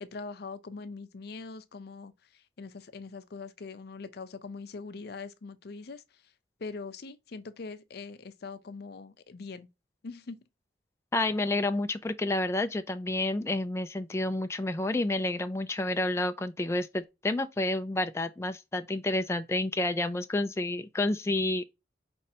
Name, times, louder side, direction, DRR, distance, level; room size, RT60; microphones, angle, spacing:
voice 1, 0.0-6.0 6.6-9.7 10.0-10.4, left 4 dB, 65° left, 0.5 m, -42 dB
voice 2, 11.1-21.6, left 2 dB, 15° left, 0.4 m, -29 dB
5.4 x 3.1 x 2.7 m
head